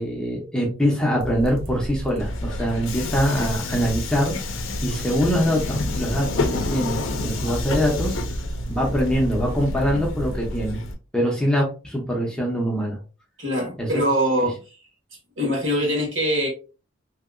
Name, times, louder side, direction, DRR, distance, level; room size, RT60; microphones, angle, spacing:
voice 1, 0.0-4.3 4.8-8.2 8.7-10.8 11.1-13.0 13.8-14.0, equal, 5° left, 0.6 m, -23 dB
sound 1, 1.2-10.8, right 1 dB, 80° right, 0.8 m, -33 dB
Subway metro underground, 2.2-10.9, left 3 dB, 65° left, 0.5 m, -30 dB
voice 2, 13.4-14.5 15.4-16.5, equal, 60° right, 1.3 m, -22 dB
2.8 x 2.7 x 2.4 m
head